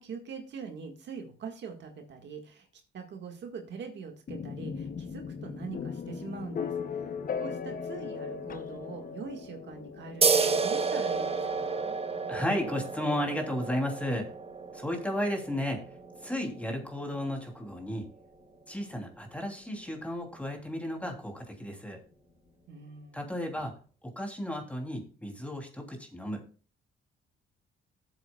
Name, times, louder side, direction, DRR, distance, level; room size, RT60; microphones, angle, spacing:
voice 1, 0.0-2.7 2.9-12.0 22.7-23.4, right 5 dB, 65° right, 4 dB, 1.8 m, -43 dB
sound 1, 4.3-18.0, left 6 dB, 45° left, 1.0 m, -40 dB
sound 2, 10.2-17.3, right 4 dB, 30° right, 1.1 m, -31 dB
voice 2, 12.3-14.3 14.7-18.1 18.7-22.0 23.1-26.4, equal, 5° left, 2 dB, 3.0 m, -34 dB
15.0 x 8.0 x 2.4 m, 0.37 s
cardioid pair, 90°, 20 cm